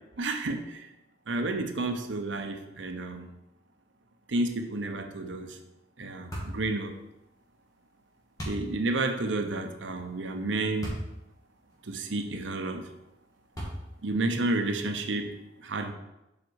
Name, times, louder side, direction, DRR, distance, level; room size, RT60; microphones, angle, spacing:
voice 1, 0.2-0.9 1.3-3.3 4.3-5.6 6.0-7.0 8.5-11.0 11.8-12.9 14.0-15.9, right 2 dB, 85° right, 6 dB, 0.9 m, -31 dB
sound 1, 6.3-6.6 8.4-8.7 10.8-11.1 11.7-11.8 13.5-14.0, equal, 20° left, 2.2 m, -35 dB
7.5 x 5.3 x 4.7 m, 0.94 s
head